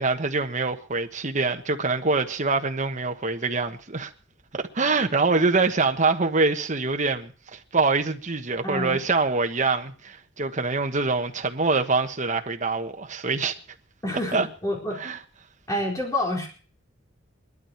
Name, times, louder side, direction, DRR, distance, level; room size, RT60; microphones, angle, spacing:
voice 1, 0.0-4.1 4.5-13.5 14.3-14.5 15.0-15.2, right 3 dB, 40° right, 1.3 m, -25 dB
voice 2, 8.6-9.0 14.0-15.0 15.7-16.5, left 1 dB, 15° left, 4.1 m, -28 dB
20.5 x 12.5 x 4.6 m
head